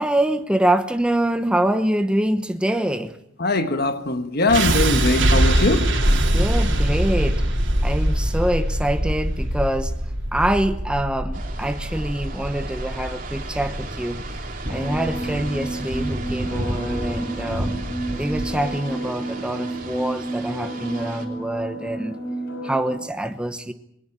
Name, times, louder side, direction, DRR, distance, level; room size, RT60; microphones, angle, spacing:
voice 1, 0.0-3.2 6.1-7.4 7.8-9.9 10.3-14.2 14.7-17.7 18.2-22.2 22.5-23.7, right 1 dB, 5° right, 1.0 m, -25 dB
voice 2, 3.4-6.0, left 2 dB, 55° left, 1.6 m, -21 dB
sound 1, 4.5-16.5, right 1 dB, 70° right, 3.4 m, -23 dB
sound 2, 11.3-21.2, right 1 dB, 45° right, 3.3 m, -33 dB
sound 3, 14.7-23.0, right 1 dB, 75° left, 5.7 m, -31 dB
21.5 x 19.0 x 8.2 m
head